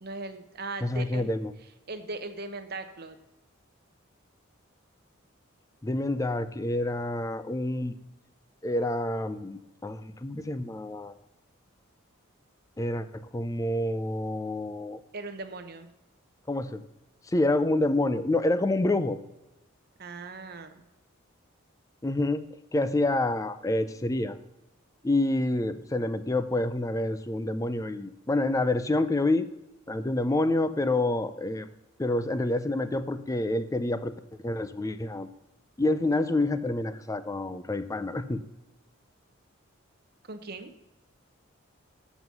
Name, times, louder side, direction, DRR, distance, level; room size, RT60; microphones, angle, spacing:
voice 1, 0.0-1.3 1.9-3.1 15.1-15.9 20.0-20.8 40.3-40.7, right 3 dB, 50° right, 8 dB, 0.8 m, -39 dB
voice 2, 0.8-1.5 5.8-7.9 8.6-11.1 12.8-15.0 16.5-16.8 17.3-19.2 22.0-22.4 22.7-24.4 25.0-29.5 29.9-31.7 32.0-34.1 34.4-35.3 35.8-38.4, left 2 dB, 15° left, 12 dB, 0.4 m, -27 dB
7.8 x 6.1 x 5.3 m, 0.96 s
head